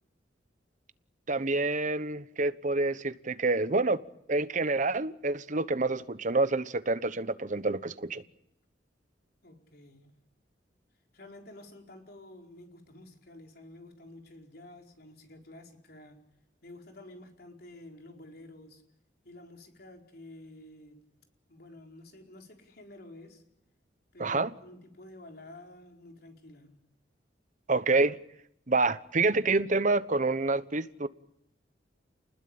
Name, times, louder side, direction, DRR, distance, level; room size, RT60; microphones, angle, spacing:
voice 1, 1.3-4.0 4.3-8.2 24.2-24.5 27.7-28.2 28.7-31.1, right 3 dB, 45° right, 1.1 m, -27 dB
voice 2, 9.4-10.1 11.1-16.2 16.6-18.8 19.2-21.0 21.5-23.4 24.1-26.8, left 1 dB, 60° left, 4.7 m, -50 dB
29.0 x 20.5 x 8.8 m
head